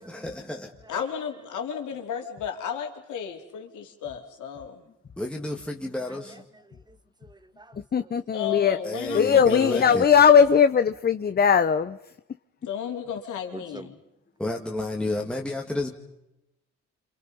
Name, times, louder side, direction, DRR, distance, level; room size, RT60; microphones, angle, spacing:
voice 1, 0.0-0.7 5.2-6.4 8.8-10.0 14.4-15.9, left 1 dB, 5° left, 2.2 m, -31 dB
voice 2, 0.9-4.8 8.3-10.0 12.7-13.9, left 8 dB, 80° left, 3.8 m, -33 dB
voice 3, 6.0-8.1 13.5-13.9 15.8-15.9, right 2 dB, 15° right, 1.8 m, -48 dB
voice 4, 7.9-8.8 9.1-12.0, left 7 dB, 30° left, 0.8 m, -19 dB
28.5 x 27.5 x 5.5 m
cardioid pair, 90°, 30 cm